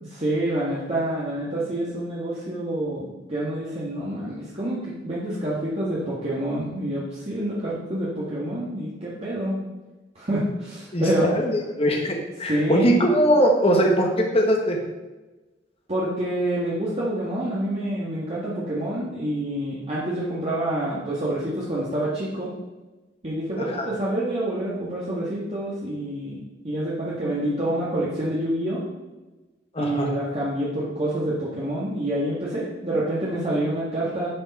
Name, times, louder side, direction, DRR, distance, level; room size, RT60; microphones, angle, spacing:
voice 1, 0.0-9.6 10.2-11.3 12.5-12.9 15.9-22.5 23.2-26.4 26.6-28.8 29.8-34.3, right 1 dB, 35° right, -8 dB, 1.6 m, -27 dB
voice 2, 10.9-14.8 23.6-23.9 29.7-30.1, equal, 30° left, 1 dB, 1.2 m, -21 dB
11.0 x 4.9 x 4.2 m, 1.1 s
head